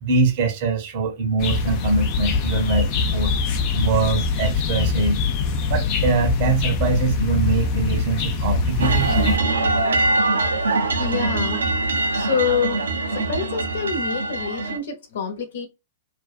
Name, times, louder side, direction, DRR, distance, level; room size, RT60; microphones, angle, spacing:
voice 1, 0.0-3.3 3.7-5.2 5.7-9.1, right 4 dB, 50° right, 0.7 m, -23 dB
sound 1, 1.4-9.4, left 4 dB, 40° left, 0.5 m, -23 dB
sound 2, 8.8-14.8, right 2 dB, 85° right, 0.6 m, -22 dB
voice 2, 11.0-11.7 12.1-12.8 13.1-15.7, left 6 dB, 65° left, 1.0 m, -26 dB
2.5 x 2.1 x 2.4 m
hypercardioid pair, 115°, 0 cm